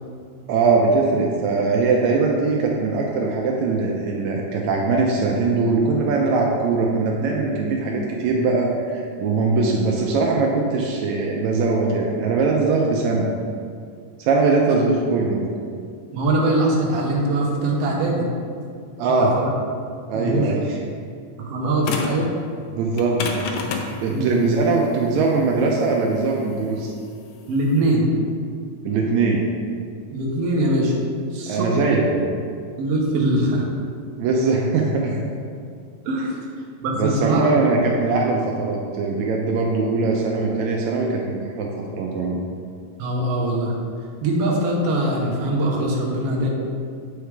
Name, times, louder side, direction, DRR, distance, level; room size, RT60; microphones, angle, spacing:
voice 1, 0.5-13.3 14.2-15.5 19.0-19.3 20.1-20.6 22.7-23.2 24.0-26.9 28.8-29.4 31.5-32.2 34.2-35.2 37.0-42.4, right 3 dB, 85° right, -1 dB, 1.6 m, -21 dB
voice 2, 16.1-18.3 19.1-19.5 20.1-20.5 21.4-22.3 24.1-24.3 27.5-28.1 30.1-30.9 31.3-32.0 32.8-33.7 36.0-36.3 36.8-37.5 43.0-43.8 44.2-46.5, right 1 dB, 65° right, -2 dB, 1.6 m, -22 dB
sound 1, 21.8-22.3 22.9-27.9, left 4 dB, 85° left, 1.6 m, -29 dB
8.2 x 4.8 x 3.4 m, 2.2 s
omnidirectional pair, 3.8 m